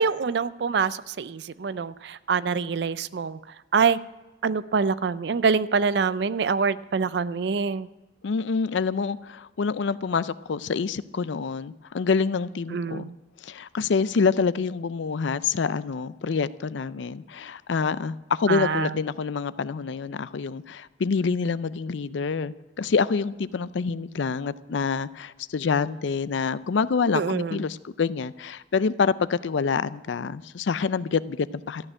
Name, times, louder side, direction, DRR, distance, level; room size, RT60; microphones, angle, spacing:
voice 1, 0.0-3.4 3.7-4.0 4.4-7.9 12.7-13.2 18.5-19.0 27.1-27.6, right 5 dB, 60° right, 16 dB, 0.4 m, -25 dB
voice 2, 8.2-13.1 13.4-31.9, left 5 dB, 75° left, 16 dB, 0.5 m, -27 dB
14.0 x 6.6 x 9.8 m, 1.1 s
head